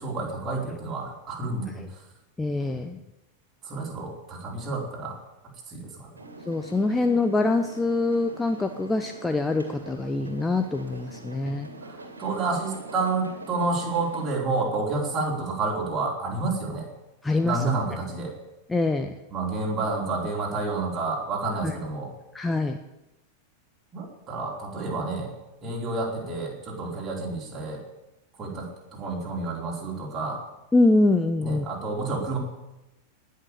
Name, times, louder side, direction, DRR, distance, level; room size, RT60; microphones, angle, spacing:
voice 1, 0.0-1.8 3.6-5.2 5.7-6.1 11.9-16.9 17.4-18.3 19.3-22.1 23.9-25.3 25.6-27.8 28.4-30.4 31.4-32.4, right 3 dB, 25° right, -2 dB, 4.5 m, -29 dB
voice 2, 2.4-3.0 6.5-11.7 17.2-17.7 18.7-19.2 21.6-21.8 22.3-22.8 30.7-31.7, left 2 dB, 10° left, 6 dB, 0.9 m, -24 dB
sound 1, 6.1-14.3, right 2 dB, 75° right, 2.5 m, -44 dB
19.0 x 6.7 x 8.8 m, 0.99 s
figure-of-eight pair, 90°, 0 cm